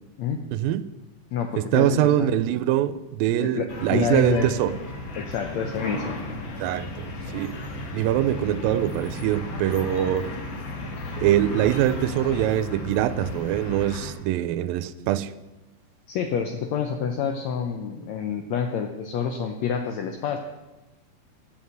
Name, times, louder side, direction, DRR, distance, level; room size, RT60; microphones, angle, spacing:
voice 1, 0.5-0.9 1.6-4.8 6.6-7.6 7.9-10.3 11.2-15.3, right 12 dB, 90° right, 2.3 m, -23 dB
voice 2, 1.3-2.3 3.3-4.5 5.2-6.2 16.1-20.4, left 7 dB, 80° left, 1.6 m, -28 dB
sound 1, 3.7-14.1, left 2 dB, 50° left, 1.6 m, -34 dB
11.5 x 7.3 x 7.8 m
omnidirectional pair, 4.0 m